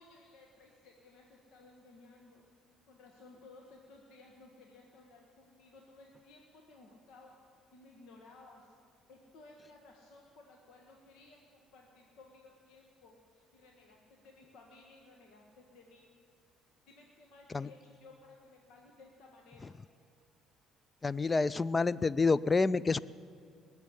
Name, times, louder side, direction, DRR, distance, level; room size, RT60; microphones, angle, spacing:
voice 1, 0.0-2.5 2.9-7.4 7.7-8.8 9.1-16.1 16.8-19.7, left 3 dB, 70° left, 0 dB, 1.6 m, -58 dB
voice 2, 21.0-23.0, left 4 dB, 25° left, 20 dB, 0.4 m, -28 dB
19.5 x 7.1 x 9.9 m, 2.3 s
supercardioid pair, 70°, 0 cm